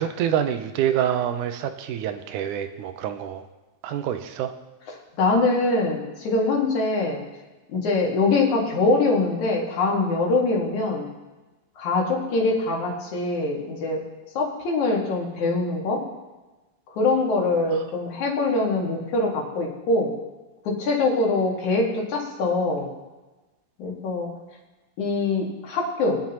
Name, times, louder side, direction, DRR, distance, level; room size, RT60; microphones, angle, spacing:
voice 1, 0.0-3.5 3.8-4.5 17.7-17.8, right 10 dB, 85° right, 8 dB, 2.2 m, -26 dB
voice 2, 5.2-7.2 7.7-11.1 11.8-14.0 14.3-16.0 16.9-20.1 20.6-22.9 23.8-24.3 25.0-26.2, left 3 dB, 70° left, -1 dB, 3.3 m, -23 dB
22.0 x 9.5 x 3.0 m, 1.2 s
omnidirectional pair, 3.5 m